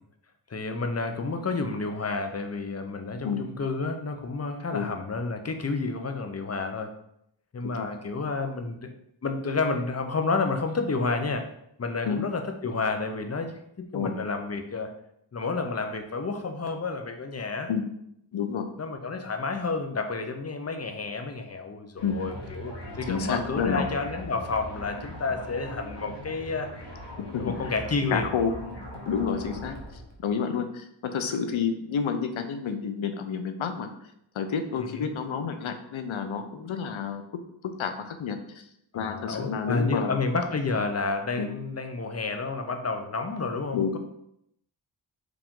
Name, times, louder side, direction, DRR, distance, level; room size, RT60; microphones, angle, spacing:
voice 1, 0.5-6.9 7.5-8.9 9.2-11.5 11.8-14.9 15.3-17.7 18.8-26.7 27.4-28.3 34.8-35.1 38.9-44.0, left 3 dB, 35° left, 6 dB, 0.6 m, -30 dB
voice 2, 18.3-18.7 22.0-22.1 23.1-23.9 27.3-27.5 28.1-28.5 29.0-33.9 34.3-37.2 37.6-38.6 38.9-40.2 41.4-41.5 43.7-43.9, left 6 dB, 75° left, 7 dB, 0.6 m, -29 dB
sound 1, 22.0-30.2, equal, 60° left, 1.1 m, -40 dB
4.8 x 2.5 x 3.6 m, 0.76 s
wide cardioid pair, 60°, 47 cm